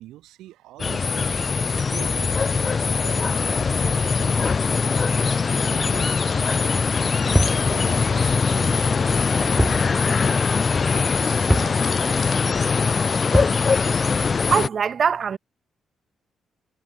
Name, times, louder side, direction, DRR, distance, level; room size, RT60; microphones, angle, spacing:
voice 1, 0.0-7.2 7.6-10.4 10.8-12.4, right 15 dB, 80° right, 6.3 m, -43 dB
sound 1, 0.8-14.7, left 5 dB, 45° left, 0.4 m, -21 dB
sound 2, 7.3-7.7 9.6-9.9 10.2-10.3 11.5-11.8 13.3-13.6, equal, ahead, 0.8 m, -21 dB
voice 2, 14.5-15.4, right 7 dB, 55° right, 1.2 m, -21 dB
hypercardioid pair, 45°, 0 cm